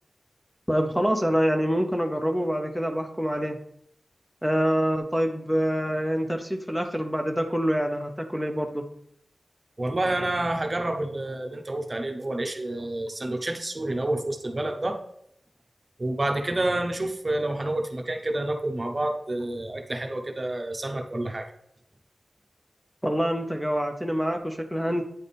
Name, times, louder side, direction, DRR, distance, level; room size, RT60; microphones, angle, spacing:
voice 1, 0.7-3.6 4.4-8.8 23.0-25.0, equal, 5° left, 4 dB, 0.6 m, -26 dB
voice 2, 9.8-15.0 16.0-21.5, right 1 dB, 35° right, 4 dB, 0.8 m, -29 dB
9.2 x 3.5 x 4.2 m, 0.73 s
wide cardioid pair, 85°, 0 cm